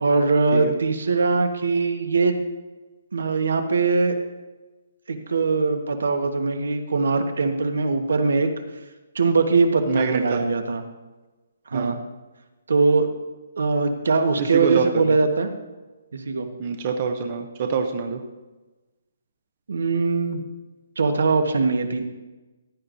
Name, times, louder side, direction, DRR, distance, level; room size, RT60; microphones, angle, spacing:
voice 1, 0.0-2.3 3.1-4.2 5.1-8.5 9.1-10.8 11.7-12.0 12.7-13.1 13.6-15.5 16.1-16.5 19.7-20.4 21.0-22.0, right 4 dB, 75° right, 7 dB, 1.2 m, -21 dB
voice 2, 9.9-10.5 11.7-11.9 14.4-15.1 16.6-18.2, right 5 dB, 25° right, 5 dB, 0.5 m, -25 dB
15.0 x 11.0 x 2.6 m, 1.2 s
hypercardioid pair, 180°, 0 cm